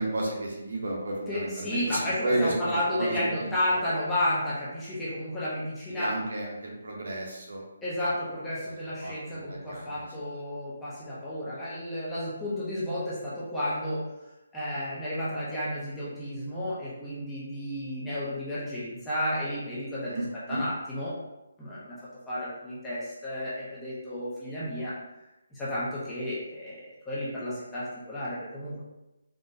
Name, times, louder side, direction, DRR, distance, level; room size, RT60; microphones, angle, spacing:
voice 1, 0.0-3.1 3.7-3.8 5.9-7.6 8.8-10.0 20.1-20.6, right 1 dB, 60° right, -1 dB, 0.8 m, -32 dB
voice 2, 1.3-6.1 7.8-14.0 14.5-20.1 20.5-21.1 21.6-22.0 22.3-24.9 25.5-28.8, left 1 dB, 5° left, -10 dB, 0.4 m, -32 dB
3.6 x 2.0 x 2.5 m, 0.97 s
hypercardioid pair, 180°, 0 cm